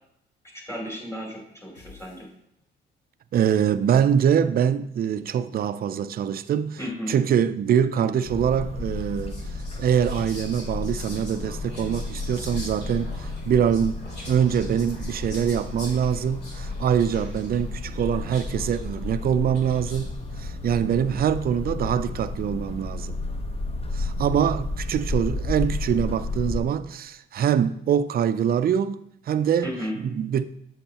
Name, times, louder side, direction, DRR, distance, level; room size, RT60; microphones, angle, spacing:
voice 1, 0.5-2.3 6.8-7.1 29.6-30.0, equal, 15° left, 3.3 m, -34 dB
sound 1, 1.8-3.0, left 4 dB, 75° left, 3.0 m, -51 dB
voice 2, 3.3-6.8 7.1-9.4 9.8-13.9 14.3-20.1 20.4-23.2 23.9-29.0 29.3-29.7 30.0-30.4, right 8 dB, 50° right, 0.4 m, -24 dB
sound 2, 8.3-26.6, left 2 dB, 30° left, 0.9 m, -32 dB
Whispering, 8.8-20.3, left 1 dB, 55° left, 2.9 m, -45 dB
7.9 x 7.2 x 2.9 m
cardioid pair, 90°, 20 cm